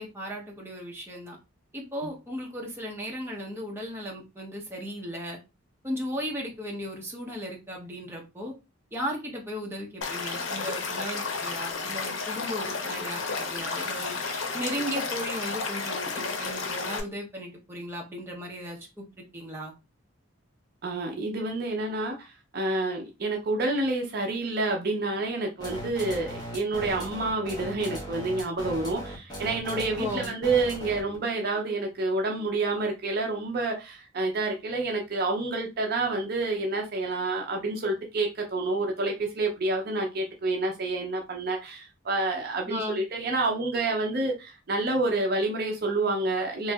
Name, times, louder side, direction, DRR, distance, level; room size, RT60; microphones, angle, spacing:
voice 1, 0.0-1.4 1.7-5.4 5.8-8.5 8.9-14.2 14.5-19.1 19.3-19.7 30.0-30.3 42.7-43.0, equal, 10° right, 0.7 m, -36 dB
Stream / Liquid, 10.0-17.0, left 4 dB, 75° left, 0.6 m, -32 dB
voice 2, 20.8-46.7, right 2 dB, 50° right, 0.5 m, -28 dB
sound 1, 25.6-31.2, equal, 20° left, 0.8 m, -37 dB
2.9 x 2.6 x 2.3 m
head